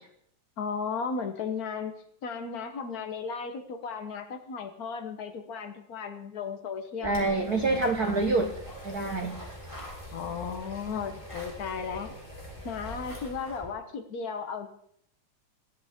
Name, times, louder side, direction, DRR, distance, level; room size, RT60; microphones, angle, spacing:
voice 1, 0.6-1.9 2.2-7.8 10.1-12.1 12.6-14.7, left 5 dB, 75° left, 6 dB, 0.8 m, -35 dB
sound 1, 7.0-13.7, equal, 10° left, 3.6 m, -43 dB
voice 2, 7.0-8.5 8.8-9.4, right 3 dB, 65° right, 3 dB, 0.9 m, -26 dB
20.5 x 13.5 x 3.6 m, 0.69 s
omnidirectional pair, 3.4 m